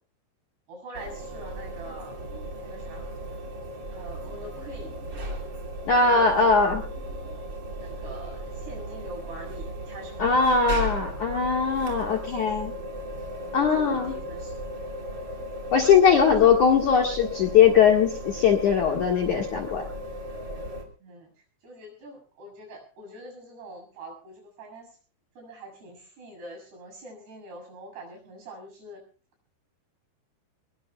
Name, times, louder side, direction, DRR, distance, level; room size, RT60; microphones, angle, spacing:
voice 1, 0.7-2.2 2.6-3.1 3.9-4.9 6.0-6.8 7.7-10.7 12.0-12.5 13.5-14.7 16.0-16.7 21.0-21.3 21.6-25.0 25.4-29.0, right 1 dB, 60° right, 2 dB, 9.5 m, -44 dB
sound 1, 0.9-20.8, equal, 25° right, 3.1 m, -36 dB
voice 2, 5.9-6.8 10.2-12.7 13.5-14.1 15.7-19.8, left 6 dB, 55° left, 1 dB, 2.4 m, -20 dB
23.0 x 21.5 x 2.4 m, 0.37 s
omnidirectional pair, 5.4 m